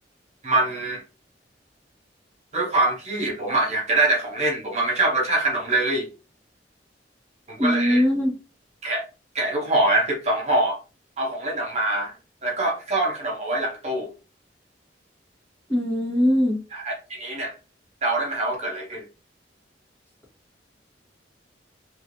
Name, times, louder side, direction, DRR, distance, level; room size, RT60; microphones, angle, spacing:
voice 1, 0.4-1.0 2.5-6.1 7.5-8.0 8.8-9.0 9.3-10.8 11.2-12.1 12.4-14.1 16.7-17.5 18.0-19.0, right 2 dB, 40° right, -1 dB, 0.8 m, -24 dB
voice 2, 7.6-8.3 15.7-16.6, equal, 10° left, -3 dB, 1.1 m, -21 dB
3.1 x 2.7 x 2.6 m, 0.31 s
head